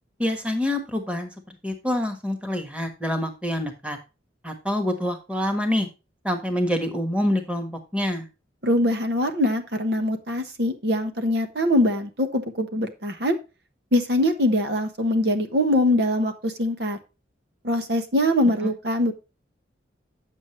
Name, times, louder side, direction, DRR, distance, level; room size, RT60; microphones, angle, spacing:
voice 1, 0.2-1.3 1.6-4.0 4.4-5.9 6.2-8.3 18.6-18.7, left 1 dB, 5° right, 5 dB, 1.4 m, -26 dB
voice 2, 8.6-13.4 13.9-17.0 17.6-19.1, left 1 dB, 60° right, 7 dB, 1.2 m, -23 dB
9.2 x 7.4 x 3.2 m, 0.29 s
head